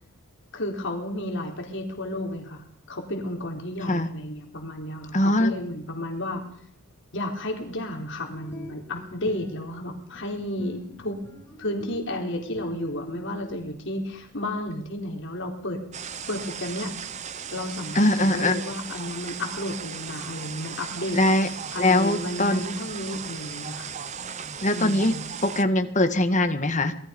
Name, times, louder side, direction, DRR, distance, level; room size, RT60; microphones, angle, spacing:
voice 1, 0.5-6.4 7.1-11.2 11.6-15.8 16.3-16.9 17.5-21.2 21.7-23.9 24.7-25.2, left 1 dB, 55° left, 1 dB, 4.2 m, -32 dB
voice 2, 5.1-5.5 17.9-18.5 21.1-21.5 21.8-22.6 24.6-25.1 25.4-26.9, left 1 dB, 35° left, 8 dB, 1.9 m, -21 dB
sound 1, 8.3-13.7, right 1 dB, 15° left, 7.0 m, -43 dB
sound 2, 15.9-25.6, right 7 dB, 30° right, 0.8 m, -36 dB
27.0 x 20.5 x 5.4 m, 0.66 s
head